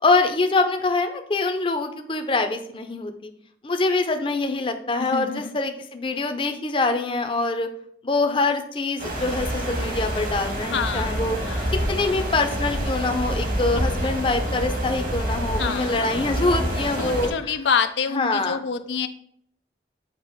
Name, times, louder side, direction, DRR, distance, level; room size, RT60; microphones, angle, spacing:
voice 1, 0.0-3.3 3.6-7.7 8.0-11.4 11.9-17.6 18.1-18.6, left 3 dB, 30° left, 6 dB, 0.6 m, -24 dB
voice 2, 5.0-5.6 10.7-11.1 11.5-11.8 14.0-14.1 15.6-16.2 17.0-19.1, left 6 dB, 90° left, 9 dB, 0.5 m, -27 dB
sound 1, 9.0-17.3, right 1 dB, 50° right, 1.5 m, -27 dB
8.1 x 2.9 x 5.0 m, 0.66 s
head